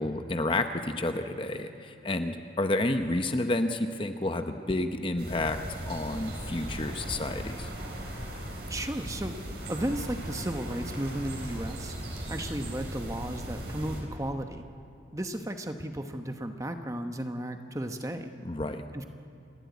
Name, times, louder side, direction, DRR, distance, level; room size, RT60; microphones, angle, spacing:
voice 1, 0.0-5.6 5.9-7.7 18.4-18.8, left 2 dB, 30° left, 7 dB, 0.8 m, -30 dB
sound 1, 5.2-14.0, right 1 dB, 65° right, 4.7 m, -38 dB
voice 2, 8.7-9.3 9.7-12.0 12.3-14.6 15.1-18.3 18.9-19.0, right 1 dB, 15° right, 6 dB, 1.0 m, -34 dB
28.0 x 12.5 x 9.5 m, 2.6 s
head